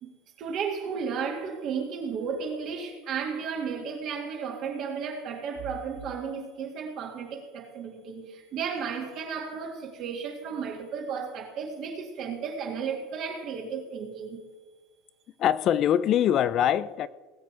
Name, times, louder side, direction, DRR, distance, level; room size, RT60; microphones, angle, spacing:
voice 1, 0.0-14.4, right 6 dB, 40° right, 2.1 m, -34 dB
voice 2, 15.4-17.1, left 10 dB, 35° left, 0.4 m, -23 dB
19.0 x 7.6 x 4.7 m
supercardioid pair, 155°, 0 cm